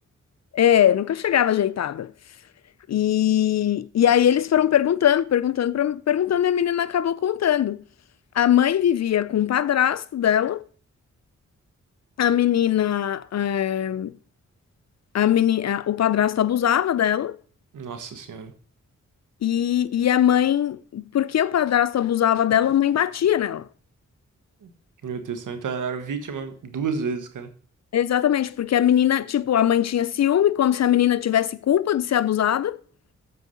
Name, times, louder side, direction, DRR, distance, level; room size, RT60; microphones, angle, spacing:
voice 1, 0.5-2.1 2.9-7.8 8.3-10.6 12.2-14.1 15.1-17.4 19.4-23.7 27.9-32.8, left 10 dB, 60° left, 0.5 m, -21 dB
voice 2, 17.7-18.5 24.6-24.7 25.0-27.5, right 5 dB, 80° right, 1.4 m, -30 dB
8.0 x 4.7 x 6.5 m
cardioid pair, 50°, 31 cm